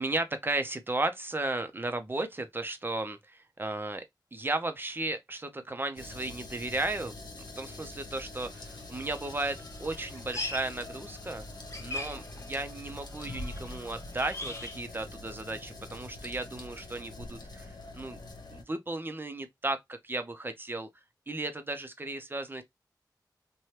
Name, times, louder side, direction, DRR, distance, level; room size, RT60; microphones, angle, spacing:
voice 1, 0.0-4.0 4.3-11.4 11.8-18.2 18.5-20.9 21.3-22.6, right 2 dB, 30° right, 0.6 m, -35 dB
sound 1, 6.0-18.6, left 2 dB, 70° left, 0.9 m, -44 dB
sound 2, 8.4-14.8, left 2 dB, 40° left, 0.7 m, -43 dB
2.8 x 2.2 x 3.2 m
wide cardioid pair, 60°, 8 cm